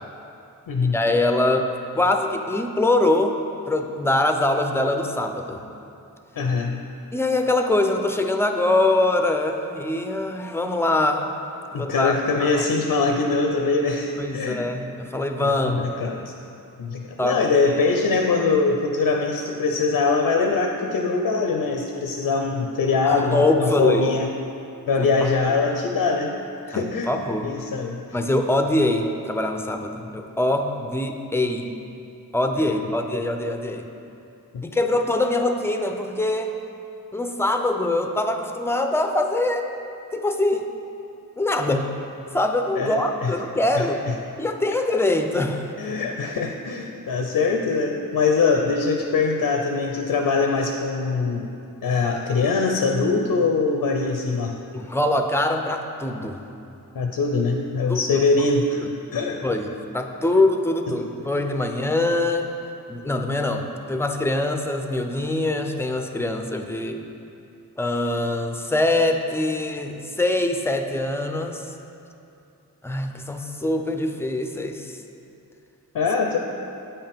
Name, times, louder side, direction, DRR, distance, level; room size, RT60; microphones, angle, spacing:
voice 1, 0.9-1.7 1.9-3.4 3.7-5.7 7.1-11.3 11.7-12.1 12.4-12.6 14.2-15.8 17.2-17.4 23.1-24.0 25.0-25.1 25.5-25.6 26.7-27.5 28.1-31.7 32.3-33.9 34.6-36.5 37.1-39.7 40.1-40.7 41.4-41.9 42.3-44.0 44.4-45.7 54.7-56.4 57.9-58.2 58.8-58.9 59.4-62.5 62.9-67.0 67.8-71.6 72.8-75.0, left 2 dB, 5° left, 5 dB, 0.4 m, -23 dB
voice 2, 6.4-6.8 11.7-14.7 15.4-16.3 16.8-24.3 24.9-26.3 26.7-27.1 27.4-28.0 34.5-34.6 42.8-43.3 43.7-44.1 45.8-51.5 51.8-54.6 56.9-58.8 59.1-59.4 61.2-61.3 75.9-76.4, left 4 dB, 80° left, 3 dB, 0.6 m, -23 dB
8.4 x 5.6 x 3.5 m, 2.7 s
wide cardioid pair, 85°, 35 cm